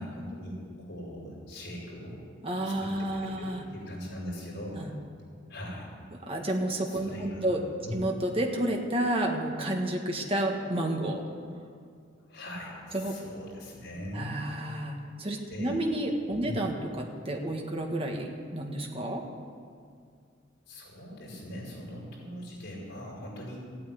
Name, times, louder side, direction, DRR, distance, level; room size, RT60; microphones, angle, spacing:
voice 1, 0.0-2.2 2.6-4.9 5.5-5.9 6.9-7.5 7.8-8.0 12.3-14.4 15.5-15.8 16.4-16.6 20.7-23.6, equal, 65° left, -4 dB, 5.2 m, -40 dB
voice 2, 2.4-3.6 4.7-4.9 6.2-7.6 7.9-11.2 12.9-13.2 14.1-19.2, right 1 dB, 30° right, 1 dB, 1.6 m, -30 dB
14.5 x 9.1 x 9.4 m, 2.1 s
head